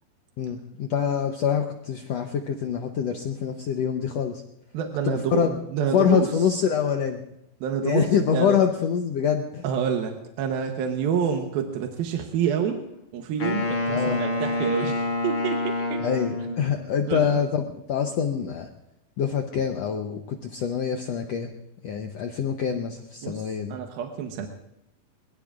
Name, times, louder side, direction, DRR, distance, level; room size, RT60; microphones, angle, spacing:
voice 1, 0.4-4.4 5.0-5.5 5.9-7.2 7.8-9.6 13.9-14.2 16.0-17.6 17.9-18.7 19.2-21.5 21.8-23.8, left 7 dB, 85° left, 4 dB, 1.4 m, -25 dB
voice 2, 4.7-6.6 7.6-8.6 9.6-12.8 13.1-16.0 17.1-17.4 23.2-24.5, right 7 dB, 85° right, 4 dB, 2.9 m, -28 dB
Wind instrument woodwind instrument, 13.4-16.9, left 2 dB, 55° left, 3.9 m, -27 dB
23.0 x 21.5 x 2.5 m, 0.80 s
omnidirectional pair, 4.2 m